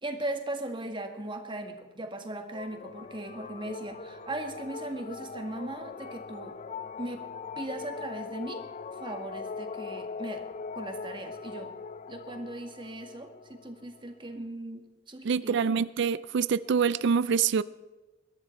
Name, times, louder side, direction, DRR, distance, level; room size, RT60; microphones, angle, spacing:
voice 1, 0.0-6.6 7.0-7.2 7.6-8.6 9.0-10.4 10.7-11.7 12.1-15.7, right 1 dB, 25° right, 5 dB, 1.7 m, -38 dB
sound 1, 2.5-14.4, left 5 dB, 40° left, 0.4 m, -41 dB
voice 2, 15.2-17.6, right 6 dB, 60° right, 17 dB, 0.4 m, -25 dB
22.0 x 11.5 x 4.4 m, 1.2 s
head